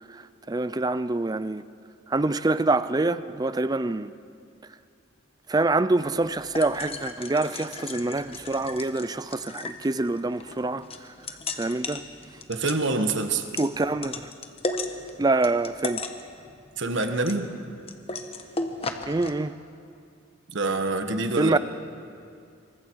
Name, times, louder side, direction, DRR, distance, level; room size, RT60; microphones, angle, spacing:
voice 1, 0.1-1.6 2.1-4.1 5.5-11.1 11.6-12.0 13.6-14.3 15.2-16.1 19.1-19.6 21.3-21.6, right 2 dB, 20° right, 0.4 m, -26 dB
sound 1, 6.0-19.3, left 3 dB, 30° left, 1.2 m, -36 dB
voice 2, 12.5-13.4 16.8-17.5 20.5-21.6, right 3 dB, 65° right, 1.4 m, -26 dB
27.0 x 24.0 x 4.7 m
head